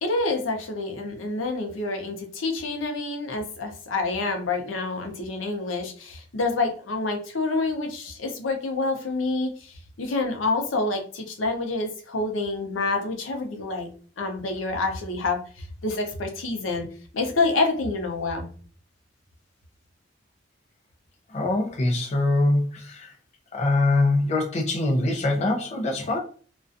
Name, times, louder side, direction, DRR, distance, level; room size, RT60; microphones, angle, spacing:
voice 1, 0.0-13.9 14.2-16.9 17.1-18.5, left 3 dB, 85° left, 0.6 m, -27 dB
voice 2, 21.3-23.1 23.5-26.2, left 2 dB, 35° left, 0.4 m, -23 dB
2.3 x 2.2 x 2.5 m
head